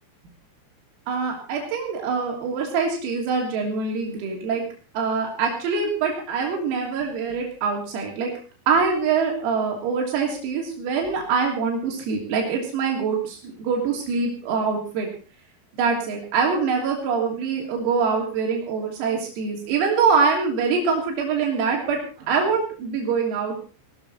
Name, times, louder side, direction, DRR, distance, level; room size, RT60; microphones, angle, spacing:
voice 1, 1.1-4.6 5.0-8.3 8.7-15.1 15.8-23.6, right 5 dB, 85° right, 0 dB, 5.8 m, -24 dB
19.0 x 13.0 x 4.3 m, 0.38 s
omnidirectional pair, 5.9 m